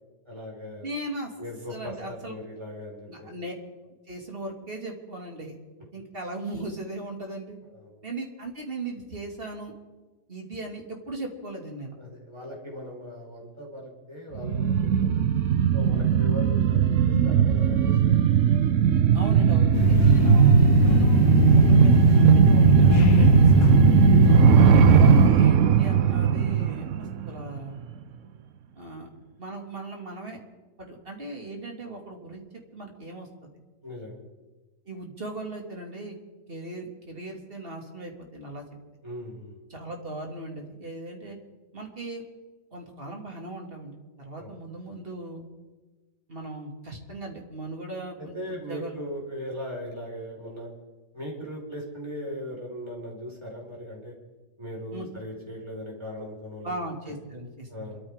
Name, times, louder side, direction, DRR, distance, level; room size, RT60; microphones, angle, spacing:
voice 1, 0.2-0.9 1.4-3.3 7.7-8.0 12.0-15.1 15.7-18.1 33.8-34.2 39.0-39.6 44.4-44.5 48.2-50.7 51.1-54.1 54.6-56.7 57.7-58.0, equal, 15° right, -3 dB, 4.7 m, -38 dB
voice 2, 0.8-1.3 1.7-2.4 3.1-3.5 4.1-5.5 5.9-7.6 8.0-9.7 10.3-11.9 19.1-21.2 21.7-24.2 24.9-27.8 28.7-29.1 29.4-30.4 30.8-32.4 32.7-33.3 34.8-36.2 36.5-38.6 39.7-41.4 41.7-42.2 42.7-45.4 46.3-49.0 54.9-55.1 56.6-58.0, right 2 dB, 30° right, 1 dB, 2.7 m, -38 dB
sound 1, 14.4-27.6 27.9-28.0, right 9 dB, 60° right, 0.8 m, -18 dB
sound 2, 19.7-25.3, left 10 dB, 80° left, 1.6 m, -22 dB
27.5 x 13.5 x 3.7 m, 1.3 s
omnidirectional pair, 2.0 m